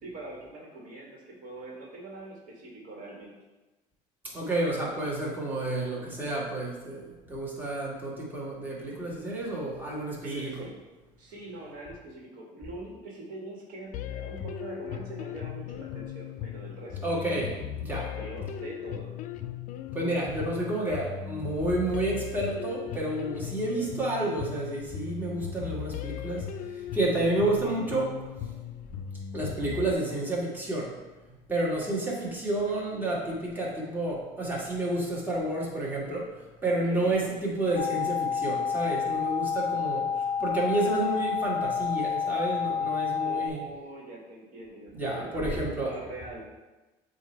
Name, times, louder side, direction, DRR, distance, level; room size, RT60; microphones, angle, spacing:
voice 1, 0.0-3.3 10.2-10.7 11.2-17.1 18.1-19.2 36.8-37.1 43.2-46.4, right 2 dB, 60° right, -2 dB, 1.6 m, -43 dB
voice 2, 4.3-10.5 17.0-18.1 19.9-26.5 26.9-28.2 29.3-30.9 31.5-36.3 36.6-40.1 40.4-43.6 44.9-45.9, right 2 dB, 10° right, -5 dB, 1.6 m, -30 dB
sound 1, 13.9-29.9, left 10 dB, 55° left, 0.4 m, -38 dB
sound 2, 37.8-43.5, left 6 dB, 20° left, 1.8 m, -29 dB
7.8 x 2.7 x 4.4 m, 1.1 s
supercardioid pair, 110°, 16 cm